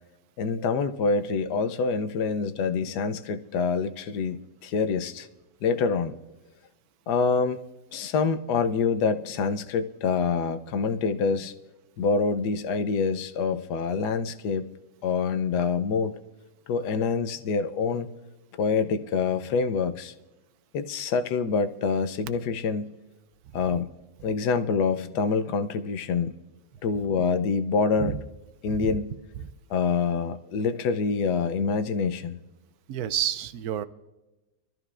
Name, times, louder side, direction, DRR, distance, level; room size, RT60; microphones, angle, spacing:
voice 1, 0.4-5.3 5.6-6.1 7.1-7.6 7.9-11.5 12.0-14.6 15.0-16.2 16.7-18.1 18.6-20.1 20.7-22.9 23.5-23.9 24.2-26.3 26.8-28.2 28.6-29.1 29.7-32.4, left 5 dB, 75° left, 10 dB, 1.2 m, -26 dB
voice 2, 32.9-33.8, right 11 dB, 70° right, 12 dB, 1.0 m, -29 dB
24.0 x 13.5 x 2.4 m, 1.1 s
omnidirectional pair, 1.9 m